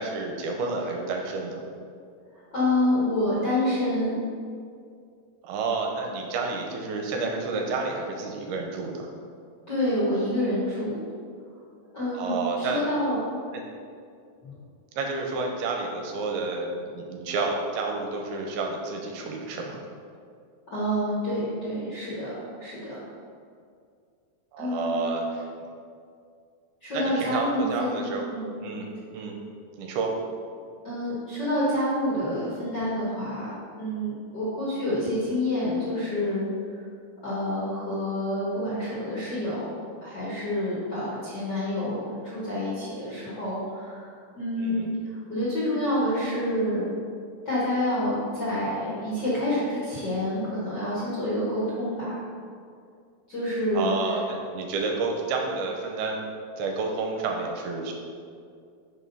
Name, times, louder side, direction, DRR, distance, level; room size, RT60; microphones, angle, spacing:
voice 1, 0.0-1.6 5.4-9.1 12.1-12.8 13.5-13.6 14.9-19.8 24.5-25.5 26.9-28.2 28.6-28.9 29.1-29.4 29.8-30.1 44.6-44.9 53.7-56.3 56.6-57.9, right 3 dB, 80° right, 1 dB, 2.6 m, -30 dB
voice 2, 2.5-4.1 9.7-11.0 11.9-13.2 14.4-14.5 20.7-23.0 24.6-25.0 26.8-28.0 28.3-28.5 30.8-36.8 37.2-39.7 40.0-46.8 47.4-52.2 53.3-53.9, left 1 dB, 45° left, -10 dB, 1.5 m, -28 dB
6.3 x 5.3 x 5.5 m, 2.3 s
omnidirectional pair, 4.6 m